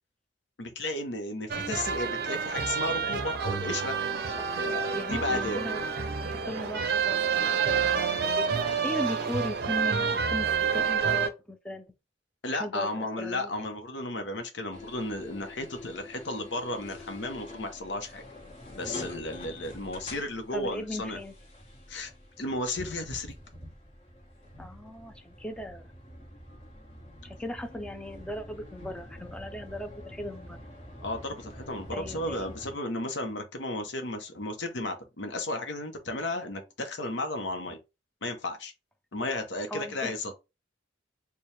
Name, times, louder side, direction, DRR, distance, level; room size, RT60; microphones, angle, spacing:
voice 1, 0.6-4.0 4.6-5.6 12.4-18.2 18.8-21.2 21.9-22.1 22.4-23.4 31.0-37.8 38.2-38.7 39.1-40.3, left 2 dB, 70° left, 0.8 m, -34 dB
sound 1, 1.5-11.3, right 6 dB, 55° right, 0.5 m, -28 dB
voice 2, 4.9-5.9 6.2-11.9 12.5-13.5 20.5-21.3 24.6-25.9 27.2-30.6 31.9-32.5 39.7-40.3, left 1 dB, 5° left, 0.5 m, -38 dB
sound 2, 14.7-32.8, left 1 dB, 30° left, 1.5 m, -46 dB
4.5 x 2.2 x 3.2 m
head